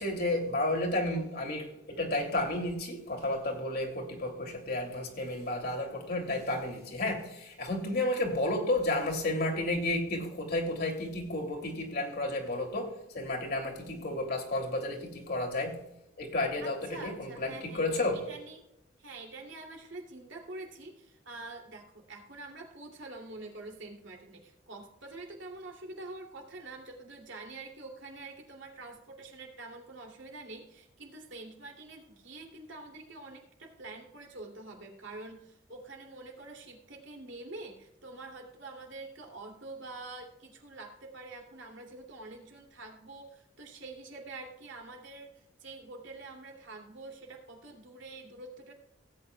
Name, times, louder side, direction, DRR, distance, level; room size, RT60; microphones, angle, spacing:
voice 1, 0.0-15.8 16.2-18.2, left 1 dB, 55° left, 2.5 m, -32 dB
voice 2, 16.6-18.6 19.0-48.7, right 2 dB, 85° right, 2.6 m, -46 dB
17.5 x 8.9 x 2.3 m
head